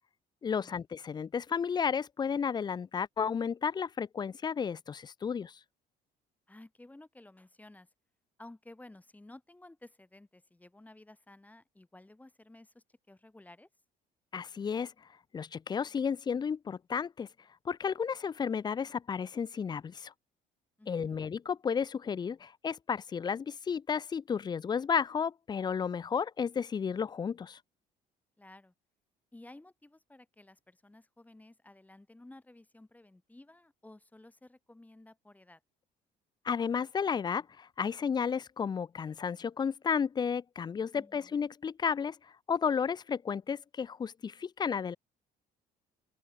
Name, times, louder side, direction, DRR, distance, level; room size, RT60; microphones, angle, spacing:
voice 1, 0.4-5.6 14.3-14.9 15.3-17.3 17.7-20.1 20.9-27.6 36.4-42.2 42.5-45.0, left 6 dB, 25° left, 0.4 m, -32 dB
voice 2, 6.5-7.9 8.4-13.7 20.8-21.2 28.4-28.7 29.3-35.6 40.9-41.5, left 2 dB, 10° left, 1.2 m, -54 dB
cardioid pair, 110°, 17 cm